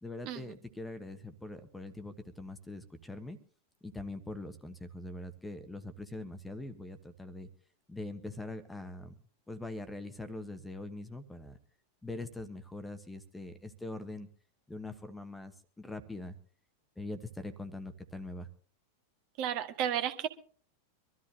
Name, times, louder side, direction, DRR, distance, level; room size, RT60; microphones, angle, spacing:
voice 1, 0.0-3.4 3.8-7.5 7.9-9.2 9.5-11.6 12.0-14.3 14.7-16.4 17.0-18.5, left 2 dB, 5° left, 10 dB, 1.2 m, -43 dB
voice 2, 19.4-20.3, right 10 dB, 45° right, 7 dB, 1.7 m, -32 dB
25.0 x 13.5 x 2.8 m, 0.43 s
figure-of-eight pair, 90°, 0 cm